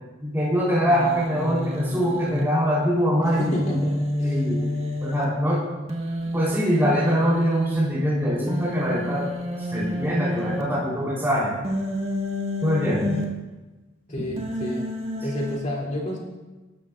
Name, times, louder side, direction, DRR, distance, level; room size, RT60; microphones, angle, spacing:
voice 1, 0.2-3.8 4.2-4.6 5.0-5.6 6.3-9.3 9.7-11.5 12.6-13.1, equal, 10° right, -6 dB, 3.7 m, -23 dB
Human voice, 0.9-2.4 3.2-5.2 5.9-7.8 8.5-10.6 11.6-13.2 14.4-15.6, left 1 dB, 30° right, 1.6 m, -29 dB
voice 2, 3.3-3.9 4.2-4.4 14.1-14.8 15.2-16.2, equal, 40° left, -3 dB, 3.1 m, -30 dB
19.0 x 13.0 x 2.5 m, 1.2 s
head